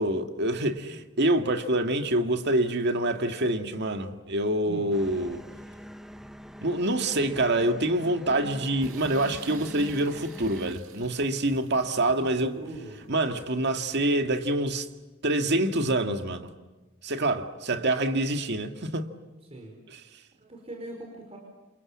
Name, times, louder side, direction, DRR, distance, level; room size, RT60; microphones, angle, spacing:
voice 1, 0.0-5.4 6.6-12.6 13.1-14.9 15.2-16.5 17.0-19.1, right 1 dB, 55° right, 2.0 m, -26 dB
sound 1, 4.9-10.7, equal, ahead, 1.1 m, -44 dB
sound 2, 8.8-14.0, right 4 dB, 85° right, 1.9 m, -49 dB
voice 2, 12.6-13.0 19.4-19.8 20.0-20.1 20.4-21.4, right 1 dB, 30° right, 5.0 m, -41 dB
29.0 x 28.0 x 7.4 m
head